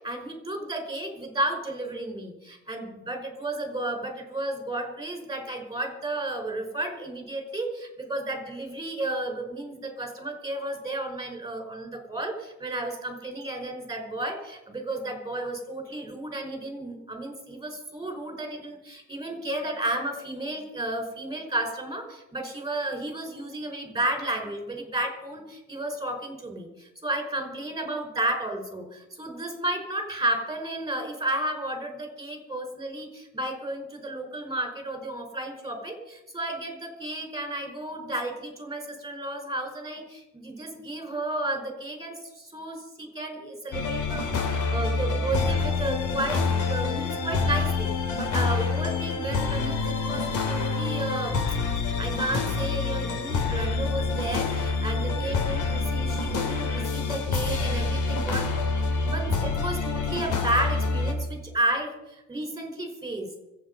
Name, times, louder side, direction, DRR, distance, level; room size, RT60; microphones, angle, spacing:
voice 1, 0.0-47.9 48.2-51.3 52.0-58.5 58.8-63.3, right 1 dB, 10° right, 3 dB, 5.1 m, -32 dB
sound 1, 43.7-61.1, left 4 dB, 85° left, 2.9 m, -27 dB
25.0 x 8.6 x 5.5 m, 0.98 s
cardioid pair, 90°, 30 cm